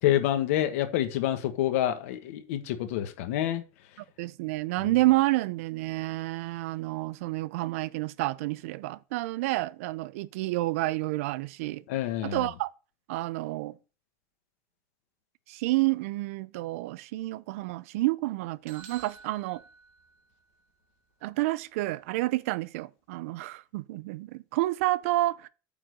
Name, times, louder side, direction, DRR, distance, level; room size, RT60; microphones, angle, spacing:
voice 1, 0.0-3.6 4.8-4.9 11.9-12.5, left 12 dB, 85° left, 1.4 m, -27 dB
voice 2, 4.2-11.8 12.2-12.7 13.1-13.8 15.5-19.6 21.2-25.5, right 19 dB, 85° right, 0.5 m, -29 dB
sound 1, 18.7-20.6, right 6 dB, 65° right, 2.2 m, -50 dB
8.8 x 3.9 x 6.5 m
supercardioid pair, 145°, 7 cm